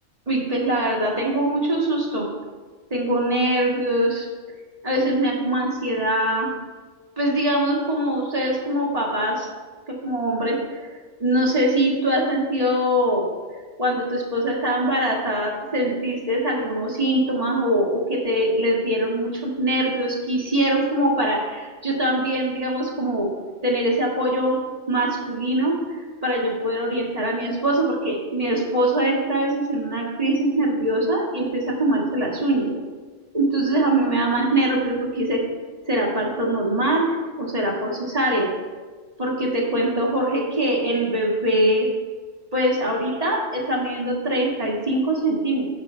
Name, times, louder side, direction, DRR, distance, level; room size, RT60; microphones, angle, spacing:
voice 1, 0.3-2.3 2.9-4.3 4.8-6.5 7.2-9.5 9.9-10.9 11.2-13.3 13.8-23.3 23.6-24.6 24.9-32.7 33.3-35.4 35.9-38.5 39.2-41.9 42.5-45.6, right 1 dB, 35° right, -3 dB, 1.7 m, -23 dB
6.8 x 6.4 x 5.5 m, 1.4 s
omnidirectional pair, 1.2 m